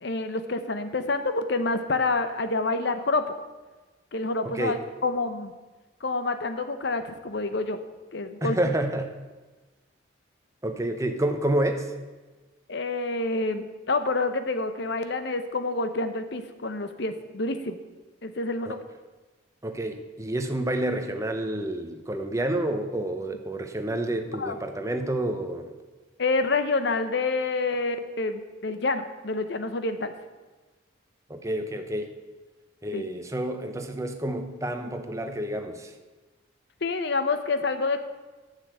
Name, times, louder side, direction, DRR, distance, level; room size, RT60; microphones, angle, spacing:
voice 1, 0.0-3.3 4.1-5.5 6.0-7.8 8.1-8.7 12.7-17.8 18.2-18.8 24.4-24.6 26.2-30.1 32.9-33.1 36.8-38.0, left 3 dB, 55° left, 10 dB, 0.8 m, -28 dB
voice 2, 8.4-9.1 10.6-11.9 18.7-18.8 19.6-25.7 31.3-32.1 32.8-35.9, right 1 dB, 15° right, 5 dB, 0.8 m, -29 dB
9.7 x 6.7 x 7.9 m, 1.2 s
head